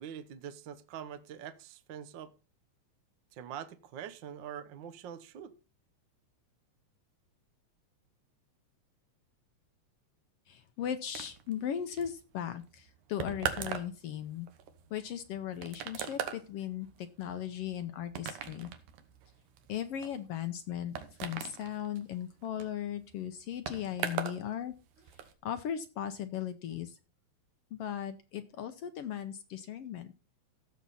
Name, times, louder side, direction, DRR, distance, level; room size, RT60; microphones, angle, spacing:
voice 1, 0.0-2.3 3.3-5.5, right 9 dB, 65° right, 1.1 m, -44 dB
voice 2, 10.5-14.5 14.9-18.7 19.7-20.9 21.2-24.7 25.4-27.0 27.7-30.1, left 10 dB, 75° left, 1.5 m, -37 dB
sound 1, 11.1-24.4 24.7-25.3, right 9 dB, 85° right, 2.6 m, -41 dB
15.5 x 7.4 x 4.2 m
omnidirectional pair, 3.4 m